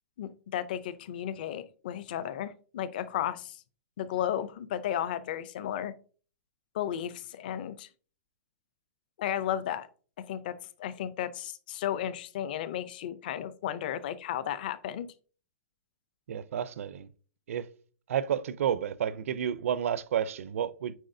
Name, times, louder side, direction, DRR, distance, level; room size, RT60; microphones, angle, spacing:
voice 1, 0.2-3.6 4.0-5.9 6.7-7.9 9.2-9.9 10.2-15.1, left 10 dB, 35° left, 0.4 m, -34 dB
voice 2, 16.3-17.1 17.5-17.7 18.1-20.9, right 9 dB, 60° right, 0.5 m, -31 dB
9.1 x 4.1 x 2.6 m
hypercardioid pair, 180°, 8 cm